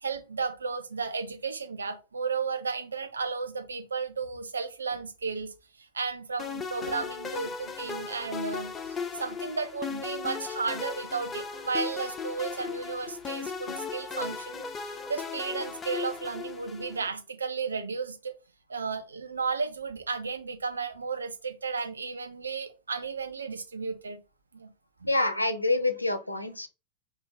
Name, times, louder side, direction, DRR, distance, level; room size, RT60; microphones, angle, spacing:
voice 1, 0.0-18.3 18.7-24.2 24.5-24.7 25.0-25.1, right 5 dB, 75° right, 0.5 m, -34 dB
sound 1, 6.4-17.1, left 5 dB, 20° left, 0.4 m, -37 dB
voice 2, 25.0-26.7, left 2 dB, 85° left, 0.4 m, -27 dB
4.2 x 2.4 x 2.8 m
figure-of-eight pair, 90°, 0 cm